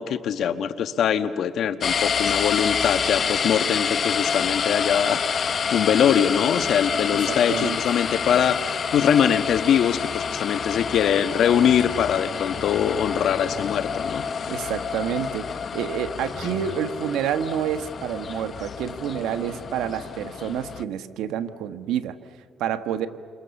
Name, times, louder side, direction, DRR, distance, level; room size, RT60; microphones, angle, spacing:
voice 1, 0.0-14.5, left 8 dB, 70° left, 10 dB, 1.3 m, -23 dB
sound 1, 1.8-20.8, left 6 dB, 50° left, 0.7 m, -28 dB
voice 2, 7.1-7.8 14.5-15.5 15.7-22.2 22.6-23.1, right 9 dB, 90° right, 9 dB, 1.3 m, -28 dB
28.5 x 27.5 x 7.1 m, 2.2 s
cardioid pair, 90°, 0 cm